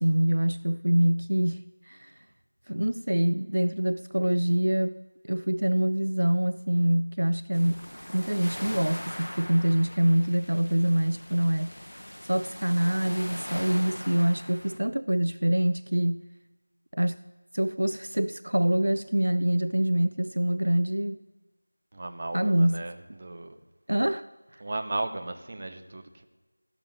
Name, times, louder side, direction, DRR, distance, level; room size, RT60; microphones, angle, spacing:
voice 1, 0.0-2.2 2.7-11.7 12.2-16.2 16.9-17.2 17.5-21.2 22.3-22.8 23.9-24.3, right 1 dB, 65° right, 0.5 m, -25 dB
sound 1, 7.5-14.8, equal, 75° left, 0.8 m, -41 dB
voice 2, 21.9-23.6 24.6-26.3, right 2 dB, 30° right, 1.0 m, -35 dB
16.5 x 7.4 x 9.1 m
figure-of-eight pair, 170°, 0 cm